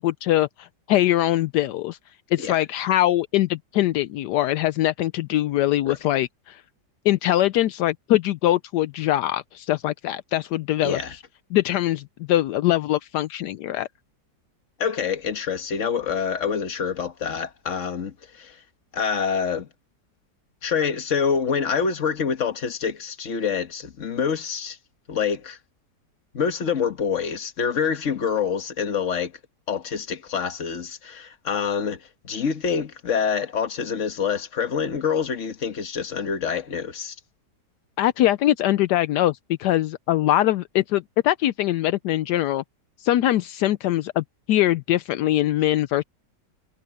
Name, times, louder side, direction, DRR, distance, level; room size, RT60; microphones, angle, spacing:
voice 1, 0.0-2.0 2.3-6.6 7.0-11.0 11.5-13.9 38.0-42.6 43.0-46.0, left 14 dB, 80° left, 1.2 m, -22 dB
voice 2, 10.8-11.1 14.8-18.6 18.9-19.7 20.6-24.8 25.1-25.6 26.3-29.3 29.7-37.1, left 6 dB, 50° left, 1.7 m, -26 dB
omnidirectional pair, 1.8 m